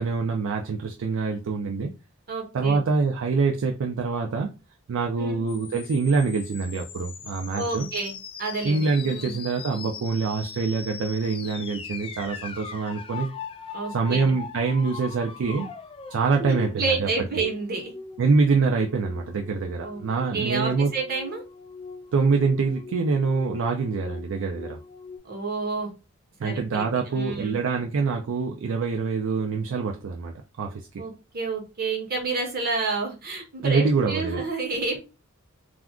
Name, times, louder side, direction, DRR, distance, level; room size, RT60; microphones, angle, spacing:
voice 1, 0.0-1.9 2.5-4.5 4.9-7.9 8.6-13.3 13.9-15.7 16.1-17.1 18.2-20.9 22.1-24.8 26.4-30.9 33.6-34.4, right 4 dB, 65° right, 0.4 m, -25 dB
voice 2, 2.3-2.8 5.2-5.4 7.6-9.4 13.7-14.3 16.4-17.9 19.8-20.0 20.3-21.4 25.2-25.9 26.4-27.6 31.0-35.0, right 3 dB, 45° right, 1.0 m, -30 dB
sound 1, 5.5-25.2, left 5 dB, 25° left, 0.3 m, -41 dB
2.4 x 2.3 x 3.5 m
head